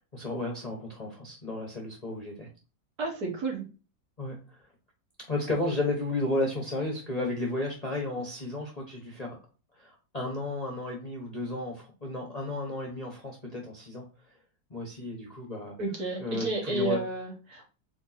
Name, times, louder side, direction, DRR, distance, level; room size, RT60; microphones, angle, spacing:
voice 1, 0.0-2.5 4.2-4.4 5.3-9.4 9.8-14.0 14.7-15.8 16.2-17.0, left 2 dB, 30° left, -2 dB, 0.8 m, -33 dB
voice 2, 3.0-3.6 15.8-17.7, right 2 dB, 60° right, 0 dB, 1.8 m, -31 dB
4.4 x 2.8 x 4.0 m, 0.33 s
omnidirectional pair, 1.9 m